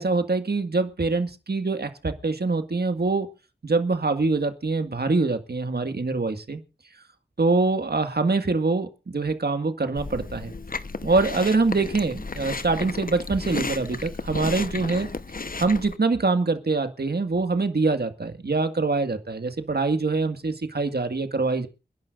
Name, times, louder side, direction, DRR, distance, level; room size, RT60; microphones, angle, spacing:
voice 1, 0.0-3.3 3.6-6.6 7.4-10.5 11.0-15.1 15.6-21.7, right 3 dB, 70° right, 8 dB, 1.9 m, -24 dB
Chewing mastication, 10.0-16.0, left 3 dB, 55° left, 1.0 m, -33 dB
28.5 x 11.0 x 2.5 m, 0.31 s
wide cardioid pair, 60°, 17 cm